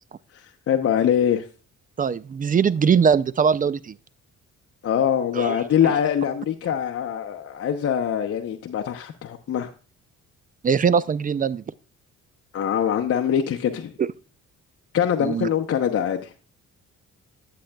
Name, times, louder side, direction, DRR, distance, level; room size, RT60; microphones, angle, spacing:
voice 1, 0.7-1.4 4.8-9.7 12.5-13.9 14.9-16.3, left 9 dB, 50° left, 0.8 m, -23 dB
voice 2, 2.0-4.0 5.3-6.0 10.6-11.6 14.0-14.1 15.2-15.5, right 6 dB, 30° right, 0.4 m, -21 dB
11.5 x 7.7 x 2.3 m
cardioid pair, 90°, 30 cm